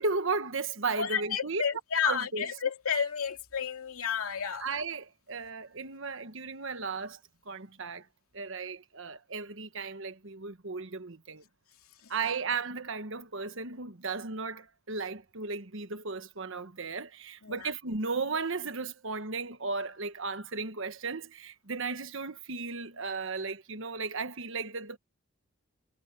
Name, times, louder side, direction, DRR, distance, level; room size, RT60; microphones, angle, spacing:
voice 1, 0.0-1.6 2.0-2.5 4.6-7.2 7.4-8.1 8.3-11.4 12.1-25.0, right 4 dB, 60° right, 1.3 m, -35 dB
voice 2, 1.0-4.7 17.4-17.7, left 7 dB, 85° left, 2.5 m, -31 dB
head